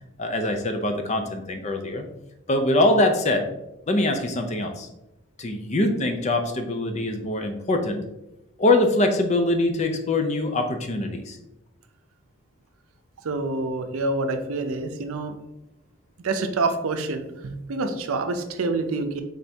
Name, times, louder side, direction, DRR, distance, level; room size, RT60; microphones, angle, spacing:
voice 1, 0.2-2.1 2.5-3.4 3.9-4.9 5.4-8.0 8.6-11.4, left 2 dB, 30° left, 6 dB, 0.5 m, -23 dB
voice 2, 13.2-15.3 16.2-19.2, right 3 dB, 80° right, 7 dB, 0.5 m, -27 dB
4.2 x 3.6 x 3.4 m, 0.90 s
head